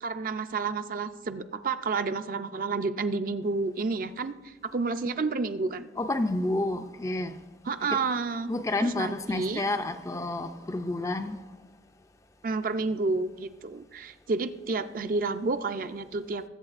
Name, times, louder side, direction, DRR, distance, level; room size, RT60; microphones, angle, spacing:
voice 1, 0.0-5.9 7.7-8.5 8.8-9.6 12.4-16.4, right 3 dB, 50° right, 0.4 m, -30 dB
voice 2, 6.0-7.4 7.8-8.0 8.5-11.4, left 2 dB, 15° left, 0.3 m, -30 dB
21.0 x 7.9 x 2.5 m
head